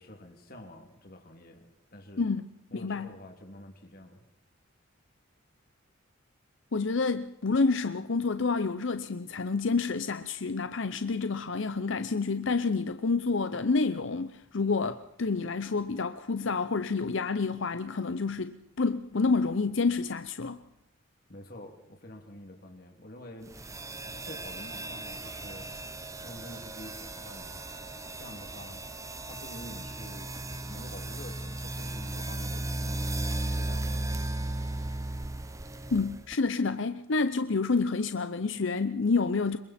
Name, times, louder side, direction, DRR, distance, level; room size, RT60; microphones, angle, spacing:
voice 1, 0.0-2.3 2.7-4.2 21.3-23.5 24.0-25.7 26.2-27.6 28.2-28.8 29.3-30.3 30.7-33.2 33.5-34.1, left 1 dB, 45° left, 2.8 m, -48 dB
voice 2, 2.7-3.1 6.7-20.6 35.9-39.6, left 4 dB, 65° left, 0.7 m, -28 dB
sound 1, 23.5-36.4, right 2 dB, 15° right, 0.9 m, -36 dB
26.5 x 23.0 x 4.4 m
head